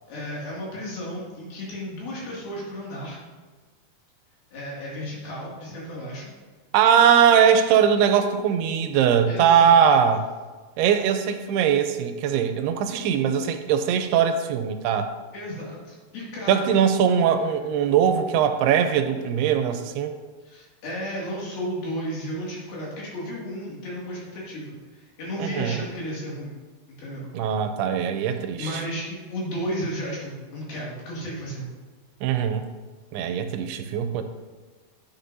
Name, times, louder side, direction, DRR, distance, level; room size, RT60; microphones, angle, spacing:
voice 1, 0.1-3.2 4.5-6.3 9.3-9.8 15.3-16.7 20.4-26.5 26.9-27.3 28.1-31.7, equal, 65° left, -5 dB, 4.1 m, -33 dB
voice 2, 6.7-10.3 10.8-15.1 16.5-20.1 25.4-25.8 27.3-28.7 32.2-32.7 33.1-34.2, right 8 dB, 85° right, 8 dB, 2.6 m, -21 dB
10.0 x 8.4 x 2.7 m, 1.3 s
omnidirectional pair, 4.6 m